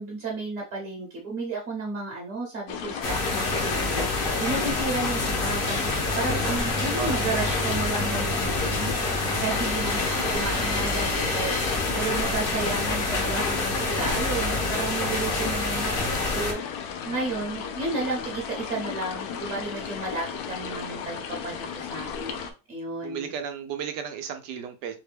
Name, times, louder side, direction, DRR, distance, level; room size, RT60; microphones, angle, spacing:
voice 1, 0.0-3.0 3.3-8.9 9.4-16.8 17.0-23.3, right 3 dB, 55° right, -2 dB, 1.2 m, -32 dB
sound 1, 2.7-22.5, left 7 dB, 70° left, 1.0 m, -35 dB
sound 2, 3.0-16.5, left 2 dB, 45° left, 0.8 m, -27 dB
voice 2, 6.9-7.5 9.8-11.2 16.3-16.5 23.0-25.0, right 8 dB, 85° right, 7 dB, 1.2 m, -36 dB
4.1 x 2.2 x 3.2 m, 0.30 s
omnidirectional pair, 1.8 m